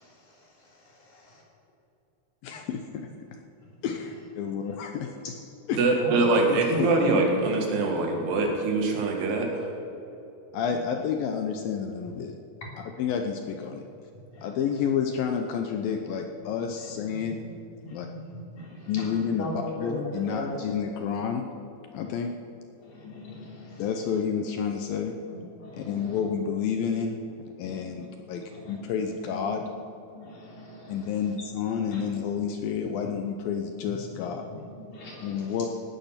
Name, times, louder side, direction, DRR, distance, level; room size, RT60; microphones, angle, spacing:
voice 1, 0.0-1.2 2.6-2.7 3.7-3.8 6.0-6.3 6.7-7.5 7.8-8.0 12.6-12.7 14.3-14.5 16.8-16.9 17.2-17.5 17.8-20.5 22.8-24.3 25.3-26.2 27.6-28.1 28.5-29.1 29.6-29.7 30.1-31.3 31.9-32.0 33.0-33.1 33.8-33.9 34.2-35.6, left 1 dB, 50° left, -3 dB, 4.5 m, -38 dB
voice 2, 2.4-3.1 3.8-4.0 4.4-5.1 5.7-5.8 6.5-6.9 10.5-12.3 13.0-13.8 14.4-17.4 17.9-18.1 18.9-21.5 21.9-22.3 23.8-25.1 25.7-27.2 27.6-29.6 30.9-34.4 35.2-35.7, left 7 dB, 75° left, 4 dB, 2.4 m, -30 dB
voice 3, 5.8-9.7, right 3 dB, 80° right, 1 dB, 4.1 m, -24 dB
17.5 x 12.5 x 5.8 m, 2.9 s
omnidirectional pair, 4.6 m